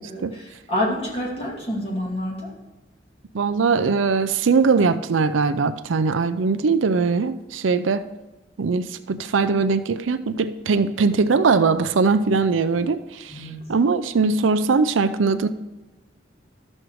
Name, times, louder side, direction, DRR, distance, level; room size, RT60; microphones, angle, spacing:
voice 1, 0.0-2.5 13.3-13.6, left 1 dB, 30° left, -3 dB, 2.4 m, -28 dB
voice 2, 3.3-8.1 8.6-13.4 13.7-15.5, right 4 dB, 85° right, 11 dB, 0.5 m, -21 dB
13.0 x 6.5 x 3.1 m, 1.1 s
head